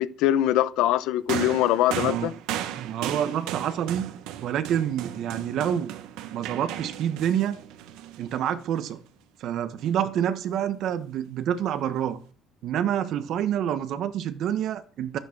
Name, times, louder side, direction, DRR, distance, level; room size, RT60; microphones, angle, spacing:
voice 1, 0.0-2.3, left 13 dB, 70° left, 0.8 m, -23 dB
sound 1, 1.3-8.8 9.8-9.9, right 12 dB, 80° right, 1.5 m, -35 dB
voice 2, 1.9-2.3 2.8-4.1 4.4-5.9 6.3-7.6 8.2-9.0 9.4-12.2 12.6-15.2, right 9 dB, 50° right, 1.3 m, -27 dB
12.5 x 10.0 x 6.1 m
cardioid pair, 180°, 0 cm